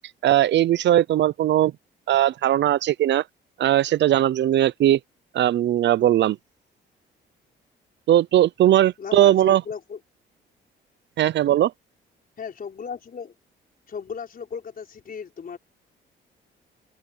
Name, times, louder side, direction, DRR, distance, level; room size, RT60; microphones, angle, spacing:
voice 1, 0.2-1.7 2.1-3.2 3.6-5.0 5.3-6.4 8.1-9.6 11.2-11.7, right 12 dB, 65° right, 0.6 m, -19 dB
voice 2, 9.0-10.0 12.4-13.3 13.9-15.6, left 6 dB, 45° left, 5.0 m, -35 dB
cardioid pair, 90°, 20 cm